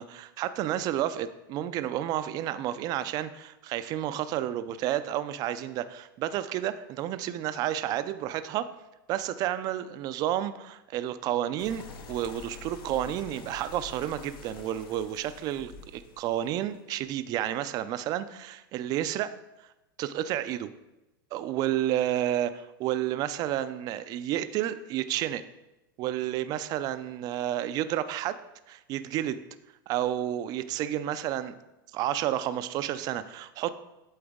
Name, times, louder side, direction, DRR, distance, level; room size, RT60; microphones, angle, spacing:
voice 1, 0.0-8.7 9.1-19.3 20.0-20.7 21.3-25.4 26.0-28.4 28.7-29.4 29.9-31.5 31.9-33.7, right 12 dB, 35° right, 13 dB, 0.3 m, -31 dB
sound 1, 11.6-17.0, left 5 dB, 85° left, 0.9 m, -46 dB
8.6 x 3.9 x 3.6 m, 0.97 s
supercardioid pair, 135°, 12 cm